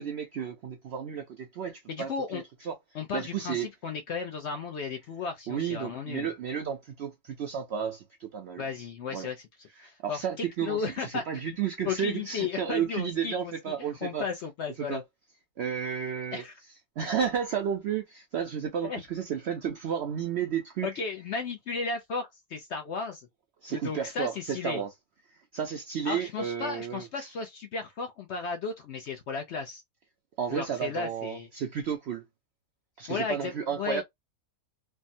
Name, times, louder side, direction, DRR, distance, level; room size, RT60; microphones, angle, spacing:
voice 1, 0.0-2.8 3.1-3.7 5.5-8.6 9.1-9.3 9.8-14.2 14.9-15.0 15.6-16.4 17.0-20.9 23.6-24.9 25.3-27.3 30.4-32.3 33.0-34.0, right 8 dB, 70° right, 0.6 m, -32 dB
voice 2, 1.9-2.4 2.9-6.3 8.6-9.5 9.8-11.4 11.8-15.0 16.3-16.5 18.8-19.0 20.8-23.3 23.7-24.8 26.1-29.8 30.5-31.5 33.1-34.0, left 5 dB, 65° left, 0.7 m, -34 dB
3.3 x 2.1 x 2.5 m
omnidirectional pair, 1.6 m